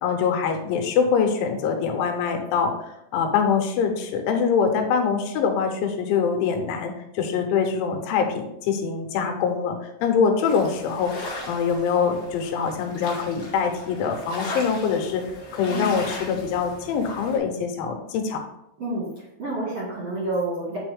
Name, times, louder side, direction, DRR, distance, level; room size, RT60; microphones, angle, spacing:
voice 1, 0.0-11.1 11.5-15.2 15.5-18.4, left 6 dB, 85° left, 4 dB, 3.3 m, -24 dB
voice 2, 4.6-4.9 15.7-16.1 18.8-19.1 19.4-20.8, right 2 dB, 55° right, -7 dB, 1.8 m, -29 dB
sound 1, 10.4-17.4, left 2 dB, 65° left, 1.2 m, -38 dB
8.5 x 4.6 x 3.5 m, 0.82 s
omnidirectional pair, 5.3 m